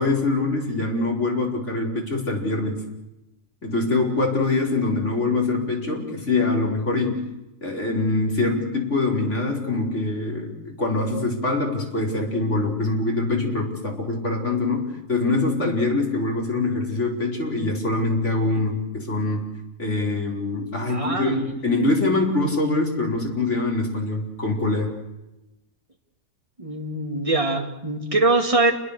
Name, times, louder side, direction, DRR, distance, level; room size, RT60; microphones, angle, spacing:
voice 1, 0.0-2.8 3.6-7.3 7.6-19.5 19.8-24.9, left 2 dB, 60° left, 0 dB, 5.1 m, -24 dB
voice 2, 20.9-21.4 26.6-28.7, right 2 dB, 25° right, 3 dB, 2.7 m, -22 dB
30.0 x 21.5 x 6.7 m, 0.97 s
omnidirectional pair, 1.4 m